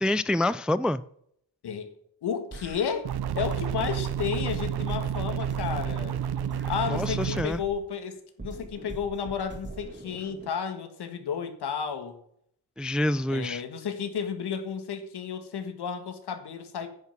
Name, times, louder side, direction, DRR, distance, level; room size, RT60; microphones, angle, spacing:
voice 1, 0.0-1.0 6.9-7.6 12.8-13.6, left 1 dB, ahead, 0.3 m, -27 dB
voice 2, 2.2-3.1 3.4-6.2 6.7-12.2 13.3-16.9, left 7 dB, 80° left, 1.8 m, -32 dB
sound 1, 2.5-3.9 4.4-7.9 8.4-10.5, right 2 dB, 30° right, 2.2 m, -42 dB
sound 2, 3.1-7.4, right 9 dB, 75° right, 0.7 m, -30 dB
10.0 x 5.6 x 7.6 m
wide cardioid pair, 105°, 39 cm